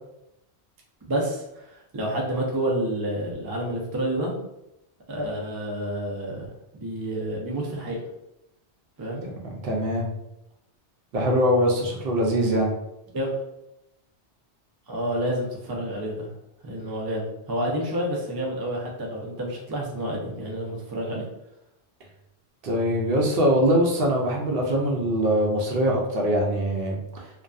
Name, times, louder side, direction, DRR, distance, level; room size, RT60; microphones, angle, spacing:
voice 1, 1.1-4.3 5.1-6.5 6.7-8.0 9.0-9.2 13.1-13.3 14.9-16.3 16.6-21.3, right 1 dB, 40° right, -2 dB, 0.3 m, -29 dB
voice 2, 9.4-10.1 11.1-12.7 22.6-27.2, equal, 65° right, -1 dB, 0.7 m, -23 dB
2.5 x 2.2 x 2.3 m, 0.85 s
omnidirectional pair, 1.2 m